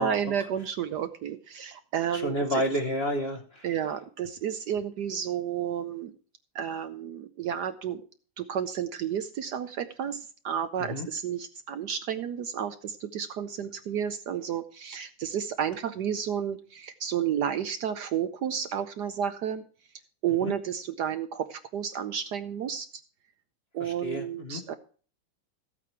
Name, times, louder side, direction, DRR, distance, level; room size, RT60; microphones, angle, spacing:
voice 1, 0.0-2.6 3.6-6.1 6.5-8.0 8.4-19.6 20.2-22.9 23.7-24.7, right 8 dB, 65° right, 10 dB, 1.1 m, -31 dB
voice 2, 2.1-3.6 10.9-11.1 20.4-20.5 23.8-24.6, equal, 40° left, 3 dB, 1.0 m, -30 dB
13.5 x 8.5 x 4.5 m, 0.41 s
omnidirectional pair, 2.2 m